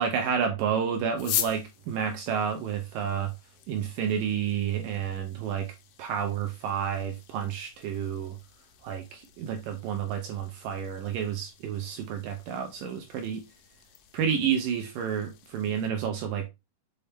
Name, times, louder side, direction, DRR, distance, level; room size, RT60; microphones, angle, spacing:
voice 1, 0.0-3.3 3.7-5.7 6.0-8.4 8.8-13.5 14.1-16.5, right 8 dB, 80° right, 2.0 m, -30 dB
sound 1, 1.1-15.9, left 12 dB, 85° left, 2.8 m, -42 dB
6.8 x 4.1 x 3.4 m
omnidirectional pair, 4.6 m